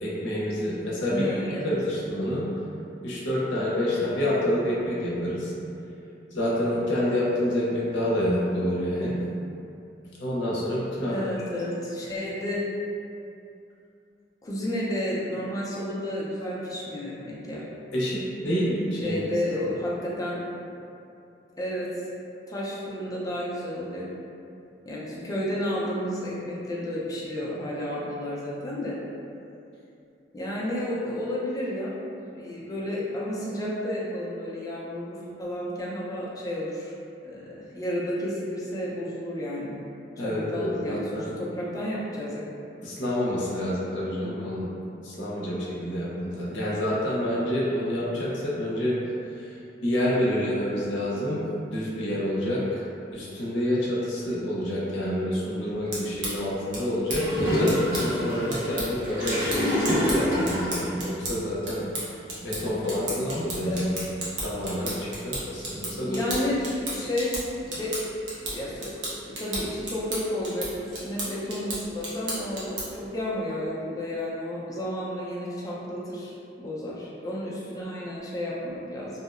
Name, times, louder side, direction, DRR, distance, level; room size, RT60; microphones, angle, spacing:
voice 1, 0.0-2.5 3.0-5.5 6.3-9.2 10.2-11.2 17.9-19.3 40.2-41.3 42.8-44.7 45.0-49.0 49.3-49.6 49.8-51.4 51.7-52.8 53.1-61.8 62.4-63.9 64.4-66.2, left 1 dB, 85° left, -7 dB, 0.6 m, -28 dB
voice 2, 1.1-1.7 11.1-12.7 14.4-17.6 19.0-20.4 21.6-21.9 22.5-24.1 24.9-29.0 30.3-31.9 32.3-36.9 37.2-39.7 40.2-42.4 63.6-64.1 66.0-67.4 67.6-67.9 68.4-68.9 69.2-72.8 73.1-79.1, left 1 dB, 20° left, -7 dB, 0.4 m, -31 dB
sound 1, 55.7-73.1, right 1 dB, 75° right, 0.7 m, -35 dB
Gurgling / Toilet flush, 57.1-60.9, equal, 50° right, 1.4 m, -27 dB
2.7 x 2.0 x 2.4 m, 2.6 s
head